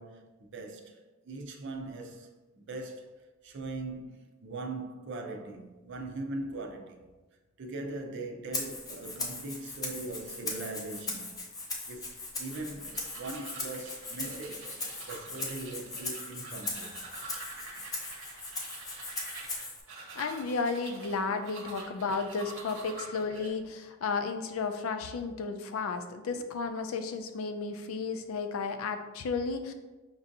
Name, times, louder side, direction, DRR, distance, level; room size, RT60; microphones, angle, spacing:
voice 1, 0.0-7.0 7.6-11.4 11.9-14.7 15.0-17.0 26.3-26.4, right 2 dB, 60° right, 0.5 m, -41 dB
Rattle (instrument), 8.5-19.8, left 3 dB, 20° left, 0.5 m, -39 dB
sound 1, 12.5-23.5, right 3 dB, 80° right, 0.9 m, -46 dB
voice 2, 20.2-29.7, left 4 dB, 90° left, 0.4 m, -33 dB
5.4 x 2.6 x 2.6 m
head